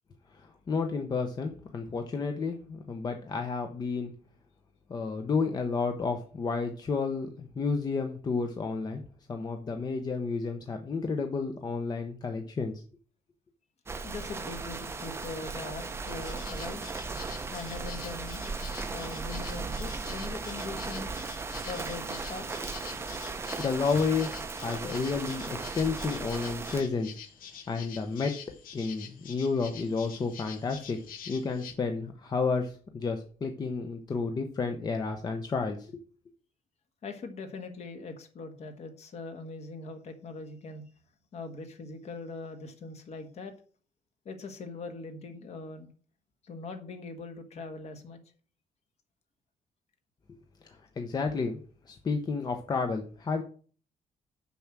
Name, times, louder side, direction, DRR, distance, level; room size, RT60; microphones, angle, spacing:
voice 1, 0.3-4.1 4.9-9.0 9.3-12.8 23.6-24.3 24.6-27.2 27.7-28.4 28.7-31.0 31.3-36.0 50.6-53.4, left 4 dB, 25° left, 5 dB, 0.9 m, -31 dB
sound 1, 13.9-26.8, right 4 dB, 15° right, 0.7 m, -37 dB
voice 2, 14.0-16.8 17.5-18.6 18.9-21.1 21.6-22.4 37.0-40.8 41.3-43.5 44.2-45.9 46.4-48.2, left 3 dB, 45° left, 7 dB, 1.6 m, -41 dB
sound 2, 16.1-31.7, left 8 dB, 75° left, 1.4 m, -47 dB
7.0 x 6.0 x 7.5 m, 0.41 s
cardioid pair, 175°, 15 cm